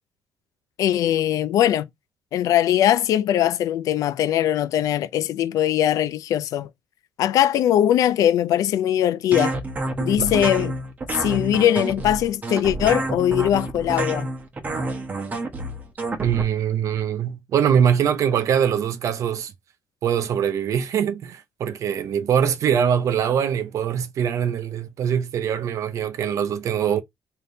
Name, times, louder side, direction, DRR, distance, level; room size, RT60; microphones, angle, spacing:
voice 1, 0.8-1.9 2.3-6.7 7.2-9.6 10.0-10.8 11.2-14.3, left 11 dB, 85° left, 0.4 m, -21 dB
sound 1, 9.3-16.4, right 2 dB, 30° right, 1.0 m, -28 dB
voice 2, 16.2-19.5 20.0-27.0, right 8 dB, 65° right, 0.6 m, -23 dB
3.4 x 2.9 x 3.8 m
cardioid pair, 130°, 6 cm